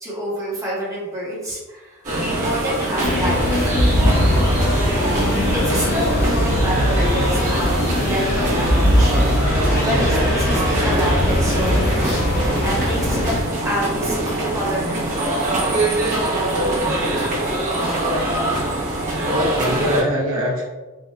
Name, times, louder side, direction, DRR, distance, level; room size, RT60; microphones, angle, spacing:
voice 1, 0.0-3.9 5.5-13.3 13.6-15.3, equal, 15° right, -6 dB, 1.1 m, -28 dB
sound 1, 2.0-20.0, right 1 dB, 40° right, 1.0 m, -23 dB
sound 2, 3.0-13.4, left 1 dB, 50° left, 0.7 m, -20 dB
voice 2, 19.3-20.6, equal, 65° right, -3 dB, 1.0 m, -23 dB
4.5 x 2.6 x 2.3 m, 1.2 s
head